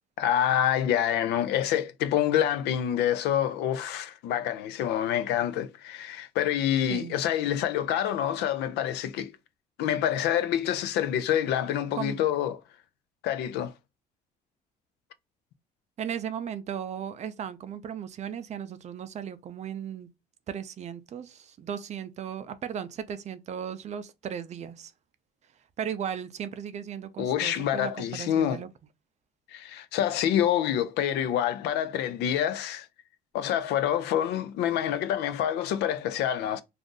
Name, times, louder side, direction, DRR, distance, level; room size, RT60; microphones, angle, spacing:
voice 1, 0.2-9.3 9.8-12.6 13.2-13.7 27.2-28.6 29.5-32.9 33.3-36.6, left 10 dB, 80° left, 0.4 m, -27 dB
voice 2, 16.0-20.1 20.5-24.9 25.8-28.7, right 8 dB, 45° right, 0.5 m, -36 dB
2.5 x 2.5 x 3.7 m
cardioid pair, 110°, 17 cm